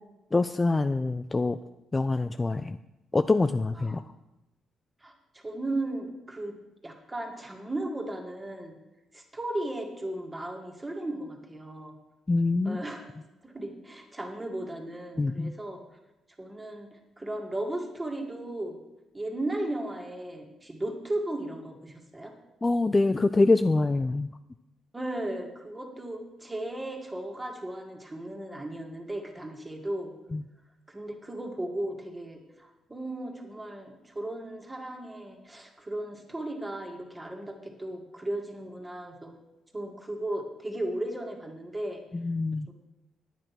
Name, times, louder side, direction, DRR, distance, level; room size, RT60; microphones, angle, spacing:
voice 1, 0.3-1.6 1.9-2.8 3.1-4.0 12.3-12.8 15.2-15.5 22.6-24.3 30.3-30.4 42.1-42.7, left 3 dB, 20° left, 10 dB, 0.4 m, -25 dB
voice 2, 5.0-6.6 6.8-8.8 9.1-12.0 12.6-13.1 13.4-15.8 16.4-18.8 19.1-22.3 24.9-30.1 30.9-39.3 39.7-42.0 42.7-42.8, right 1 dB, 15° right, 2 dB, 2.1 m, -36 dB
10.0 x 9.0 x 5.9 m, 0.96 s
cardioid pair, 90°, 0 cm